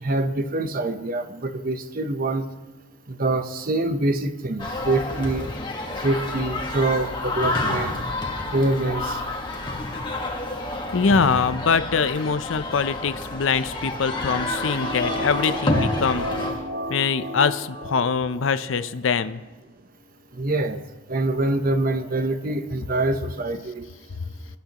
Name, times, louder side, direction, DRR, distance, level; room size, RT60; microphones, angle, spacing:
voice 1, 0.0-2.4 3.1-5.5 6.0-8.0 8.5-9.2 20.4-20.8 21.1-23.9, right 2 dB, 45° right, 8 dB, 0.8 m, -25 dB
sound 1, 4.6-16.5, left 2 dB, 25° left, 1.5 m, -29 dB
voice 2, 10.9-16.3 16.9-19.4 24.2-24.3, left 5 dB, 75° left, 13 dB, 0.6 m, -23 dB
sound 2, 13.7-18.5 18.8-18.9, left 1 dB, 70° right, 2.4 m, -32 dB
21.5 x 10.5 x 3.0 m, 1.2 s
head